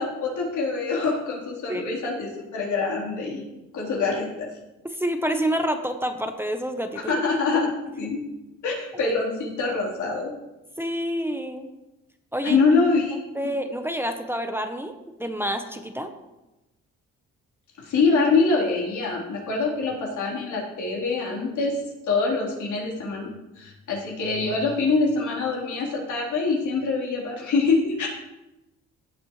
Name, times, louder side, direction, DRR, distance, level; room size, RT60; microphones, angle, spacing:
voice 1, 0.0-3.4 3.7-4.5 7.1-7.7 8.0-8.2 8.6-10.3 12.4-13.2 17.8-21.8 22.1-23.3 23.6-28.1, left 4 dB, 75° left, -3 dB, 3.9 m, -24 dB
voice 2, 4.8-7.1 8.9-9.1 10.8-11.7 12.3-12.6 13.3-14.9 15.2-16.1, equal, 10° right, 6 dB, 0.9 m, -28 dB
15.5 x 8.2 x 3.3 m, 1.0 s
cardioid pair, 90°, 30 cm